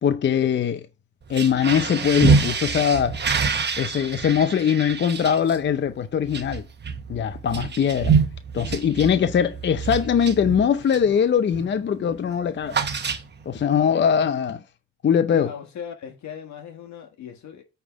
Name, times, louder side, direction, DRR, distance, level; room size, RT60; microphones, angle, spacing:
voice 1, 0.0-0.9 1.3-3.3 3.8-6.6 7.1-8.2 8.5-12.8 13.5-14.6 15.0-15.5, left 8 dB, 40° left, 0.6 m, -21 dB
sound 1, 1.2-11.2 11.5-11.8 12.1-13.6, right 5 dB, 35° right, 1.1 m, -26 dB
voice 2, 15.3-17.6, left 8 dB, 70° left, 1.5 m, -38 dB
8.7 x 3.5 x 5.0 m
cardioid pair, 90°, 30 cm